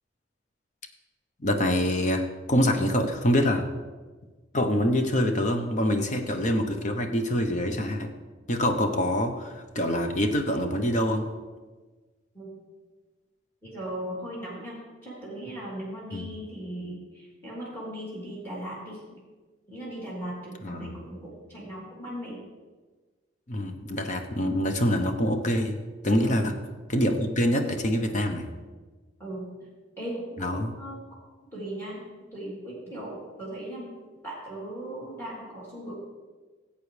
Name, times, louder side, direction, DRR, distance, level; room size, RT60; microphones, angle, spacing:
voice 1, 1.4-3.7 4.5-8.1 8.5-11.3 16.1-16.3 20.6-20.9 23.5-25.8 26.0-26.5 26.9-28.5 30.4-30.7, left 1 dB, 40° left, 5 dB, 0.8 m, -25 dB
voice 2, 13.6-19.0 19.7-22.4 26.2-26.5 29.2-29.5 30.0-31.0 31.5-32.0 32.3-33.9 34.2-35.9, right 1 dB, 10° left, -6 dB, 3.2 m, -38 dB
16.5 x 8.3 x 3.3 m, 1.3 s
head